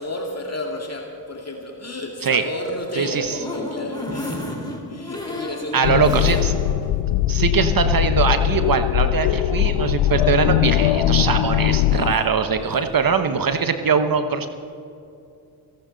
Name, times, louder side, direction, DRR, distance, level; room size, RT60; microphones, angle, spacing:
voice 1, 0.0-6.1 12.1-12.9, left 1 dB, 30° left, 1 dB, 2.2 m, -32 dB
sound 1, 2.8-6.8 7.2-7.3 7.6-7.7, left 1 dB, 10° left, 4.5 m, -32 dB
voice 2, 3.0-3.3 5.7-6.5 7.3-14.5, right 6 dB, 45° right, 9 dB, 1.2 m, -21 dB
sound 2, 5.8-12.1, left 13 dB, 75° left, 0.7 m, -20 dB
29.5 x 11.5 x 4.0 m, 2.6 s
supercardioid pair, 50°, 48 cm